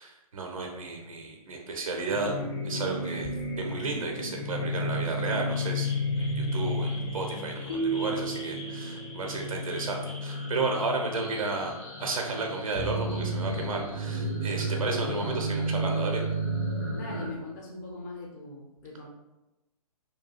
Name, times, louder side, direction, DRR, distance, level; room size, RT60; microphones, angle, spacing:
voice 1, 0.0-2.4 2.6-3.3 3.6-5.9 6.2-11.7 12.0-16.2, right 3 dB, 60° right, 1 dB, 0.5 m, -33 dB
sound 1, 2.1-17.3, equal, 45° left, 0.9 m, -32 dB
sound 2, 7.7-9.9, right 5 dB, 70° left, 1.1 m, -34 dB
voice 2, 16.9-19.1, left 3 dB, 30° left, -3 dB, 0.5 m, -41 dB
2.7 x 2.2 x 2.9 m, 1.0 s
figure-of-eight pair, 130°, 20 cm